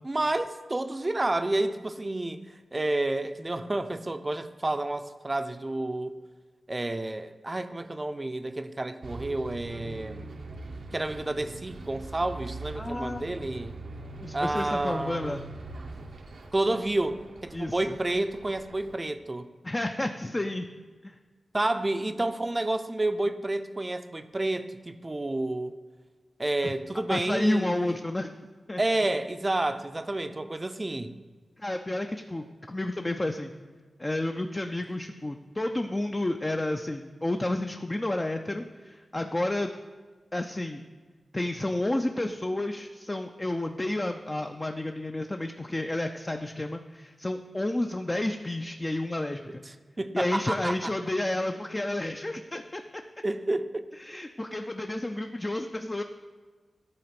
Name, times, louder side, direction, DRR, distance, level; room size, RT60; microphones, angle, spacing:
voice 1, 0.0-6.2 6.7-10.3 10.9-13.8 14.3-15.4 16.5-19.5 21.5-25.8 26.4-27.9 28.8-31.1 50.0-50.9 53.2-53.9, right 2 dB, 30° right, 10 dB, 0.5 m, -30 dB
Bus, 9.0-19.0, right 3 dB, 75° right, 0.7 m, -42 dB
voice 2, 12.8-13.3 14.2-15.4 17.5-17.9 19.6-20.7 21.0-21.2 26.6-26.7 27.1-28.4 28.7-28.8 31.6-33.5 34.0-39.7 40.3-40.8 41.3-49.6 50.1-52.8 54.0-56.0, left 1 dB, 25° left, 5 dB, 0.5 m, -31 dB
10.5 x 3.9 x 5.9 m, 1.4 s
cardioid pair, 50°, 0 cm